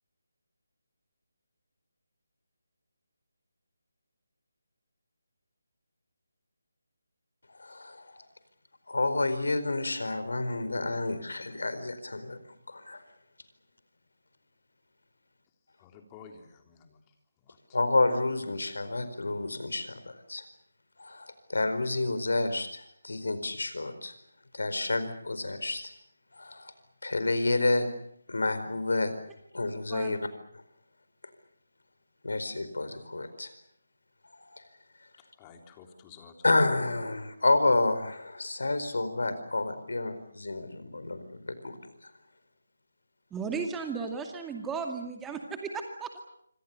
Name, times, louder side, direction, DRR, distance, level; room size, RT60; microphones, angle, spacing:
voice 1, 7.5-8.0 8.9-12.4 12.7-13.0 17.7-20.4 21.0-24.1 24.5-25.9 26.3-26.7 27.0-27.9 28.3-29.1 29.5-30.2 32.2-33.5 34.3-34.6 36.4-41.8, left 2 dB, 70° left, 11 dB, 4.6 m, -29 dB
voice 2, 15.8-17.0 17.4-17.6 35.4-36.3, left 6 dB, 20° left, 4 dB, 3.6 m, -52 dB
voice 3, 43.3-46.2, right 5 dB, 10° right, 4 dB, 2.3 m, -35 dB
27.0 x 25.5 x 6.9 m, 0.70 s
figure-of-eight pair, 155°, 0 cm